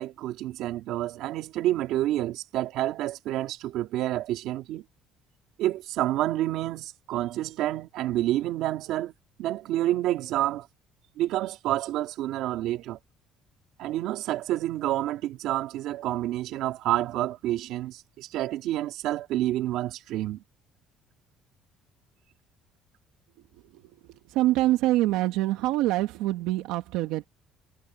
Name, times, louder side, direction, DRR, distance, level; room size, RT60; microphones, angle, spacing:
voice 1, 0.0-4.8 5.6-9.1 9.4-10.7 11.2-13.0 13.8-20.4, right 14 dB, 65° right, 2.6 m, -29 dB
voice 2, 24.3-27.3, right 16 dB, 90° right, 2.2 m, -25 dB
cardioid pair, 165°, 0 cm